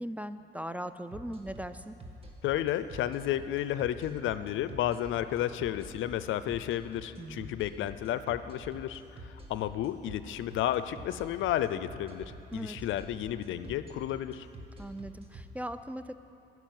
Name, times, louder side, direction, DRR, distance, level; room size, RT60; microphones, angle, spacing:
voice 1, 0.0-2.0 7.2-7.6 12.5-12.8 14.8-16.1, right 1 dB, 5° right, 11 dB, 0.4 m, -39 dB
sound 1, 1.1-15.4, right 1 dB, 30° right, 1.5 m, -46 dB
voice 2, 2.4-14.5, left 12 dB, 80° left, 13 dB, 0.5 m, -32 dB
11.5 x 6.1 x 9.2 m, 2.7 s
cardioid pair, 90°, 20 cm